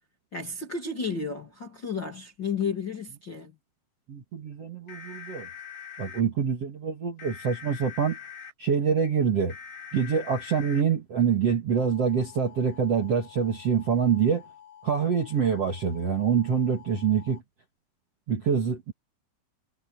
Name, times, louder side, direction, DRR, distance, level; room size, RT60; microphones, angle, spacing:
voice 1, 0.3-3.5, left 5 dB, 30° left, 2.2 m, -32 dB
voice 2, 4.1-5.5 6.0-8.2 8.6-9.5 9.9-14.4 14.8-17.4 18.3-18.9, right 6 dB, 45° right, 2.1 m, -25 dB
sound 1, 4.9-6.2 7.2-8.5 9.5-10.8 11.8-17.4, left 7 dB, 60° left, 9.9 m, -45 dB
omnidirectional pair, 5.9 m